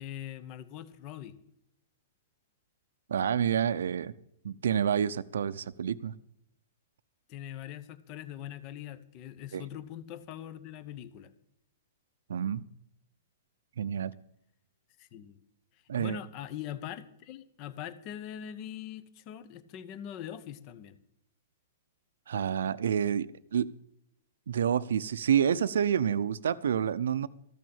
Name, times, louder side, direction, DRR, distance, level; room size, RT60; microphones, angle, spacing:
voice 1, 0.0-1.4 7.3-11.3 15.0-15.4 15.9-21.0, left 10 dB, 30° left, 15 dB, 0.9 m, -42 dB
voice 2, 3.1-4.1 4.4-6.2 9.5-9.6 12.3-12.7 13.8-14.1 15.9-16.2 22.3-23.7 24.5-27.3, right 8 dB, 85° right, 13 dB, 0.6 m, -28 dB
14.0 x 6.3 x 8.7 m, 0.76 s
hypercardioid pair, 160°, 0 cm